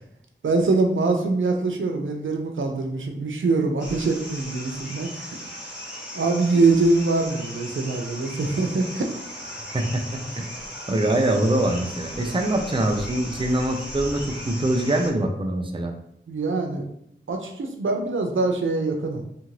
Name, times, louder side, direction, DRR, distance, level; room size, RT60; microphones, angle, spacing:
voice 1, 0.4-5.4 6.1-9.1 16.3-16.9 17.3-19.2, right 3 dB, 85° right, 3 dB, 0.4 m, -23 dB
sound 1, 3.8-15.1, equal, 5° right, 1.3 m, -37 dB
voice 2, 10.9-15.9, right 1 dB, 25° right, 3 dB, 0.5 m, -23 dB
2.8 x 2.5 x 3.1 m, 0.75 s
wide cardioid pair, 40°, 20 cm